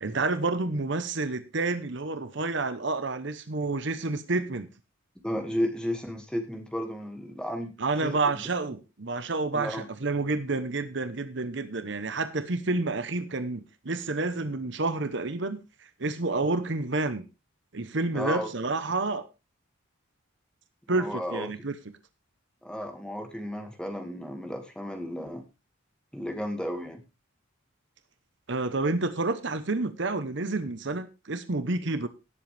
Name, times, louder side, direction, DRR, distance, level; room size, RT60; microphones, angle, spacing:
voice 1, 0.0-4.7 7.8-15.6 16.0-17.3 17.7-19.3 20.9-21.7 28.5-32.1, right 3 dB, 55° right, 0.9 m, -29 dB
voice 2, 5.2-7.7 8.0-8.3 9.5-9.9 18.1-18.5 20.9-21.5 22.6-25.4 26.1-27.0, equal, 5° left, 2.0 m, -33 dB
18.0 x 7.8 x 3.4 m
head